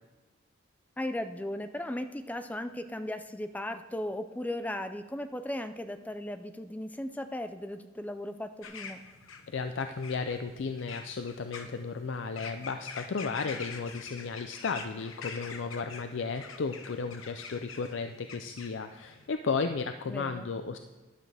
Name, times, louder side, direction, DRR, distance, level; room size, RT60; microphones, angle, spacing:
voice 1, 1.0-9.0 20.1-20.5, left 1 dB, 10° left, 9 dB, 0.4 m, -36 dB
sound 1, 8.6-19.3, left 5 dB, 90° left, 1.0 m, -46 dB
voice 2, 9.5-20.8, left 4 dB, 65° left, 8 dB, 0.5 m, -34 dB
12.5 x 11.0 x 3.4 m, 1.3 s
head